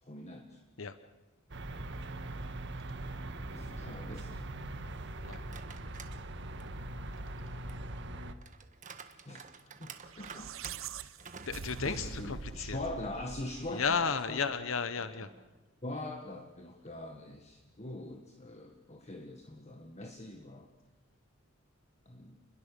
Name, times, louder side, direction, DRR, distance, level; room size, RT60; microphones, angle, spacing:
voice 1, 0.0-0.6 3.5-4.5 9.2-10.6 11.8-14.5 15.8-20.7 22.1-22.5, left 1 dB, 35° left, 4 dB, 1.8 m, -43 dB
sound 1, 1.5-8.3, right 2 dB, 60° right, 1.6 m, -41 dB
sound 2, 5.3-6.2 6.6-12.7 13.1-13.2 14.1-15.6, right 6 dB, 40° right, 1.5 m, -52 dB
sound 3, 10.0-14.4, right 5 dB, 80° right, 0.8 m, -44 dB
voice 2, 11.5-12.8 13.7-15.3, left 5 dB, 70° left, 12 dB, 1.0 m, -33 dB
29.5 x 21.5 x 6.8 m, 1.1 s
head